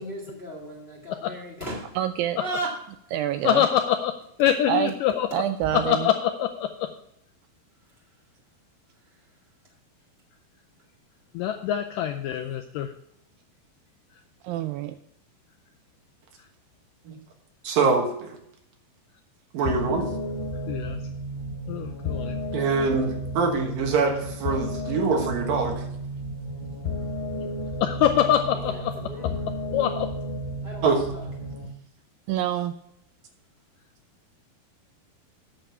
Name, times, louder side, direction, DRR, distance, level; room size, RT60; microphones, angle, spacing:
voice 1, 0.0-2.0 2.4-2.8 5.6-5.7 9.0-9.3 28.5-29.4 30.6-31.3, right 1 dB, 25° left, -1 dB, 1.2 m, -36 dB
voice 2, 2.0-2.4 3.1-3.6 4.7-4.9 5.3-6.1 14.4-15.0 32.3-32.7, right 11 dB, 80° right, 10 dB, 2.1 m, -26 dB
voice 3, 3.4-4.1 4.4-5.4 5.7-6.9 11.3-12.9 20.7-21.0 21.7-22.4 27.4-27.5 27.8-29.0 29.7-30.2, left 10 dB, 85° left, 6 dB, 1.9 m, -24 dB
voice 4, 17.6-18.4 19.5-20.0 22.5-25.8 30.8-31.0, right 4 dB, 65° right, 3 dB, 3.1 m, -24 dB
sound 1, 19.6-31.6, left 1 dB, 50° left, 3.9 m, -32 dB
9.1 x 6.7 x 5.8 m, 0.74 s
omnidirectional pair, 4.4 m